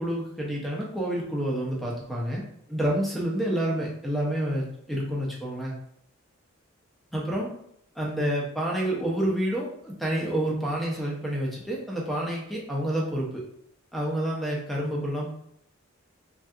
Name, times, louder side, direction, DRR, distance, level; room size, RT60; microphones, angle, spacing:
voice 1, 0.0-2.4 2.7-5.7 7.1-7.5 8.0-13.4 13.9-15.3, right 1 dB, ahead, -3 dB, 0.5 m, -28 dB
3.3 x 2.7 x 2.3 m, 0.72 s
head